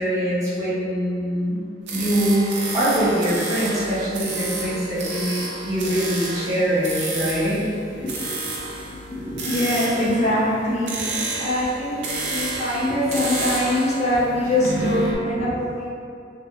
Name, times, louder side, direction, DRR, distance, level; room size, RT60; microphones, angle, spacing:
voice 1, 0.0-1.6 1.9-7.6, equal, 20° right, -11 dB, 0.5 m, -23 dB
sound 1, 1.9-15.1, right 3 dB, 80° right, 0.4 m, -30 dB
voice 2, 9.1-15.9, left 1 dB, 35° left, -7 dB, 0.4 m, -23 dB
2.7 x 2.0 x 2.3 m, 2.4 s
head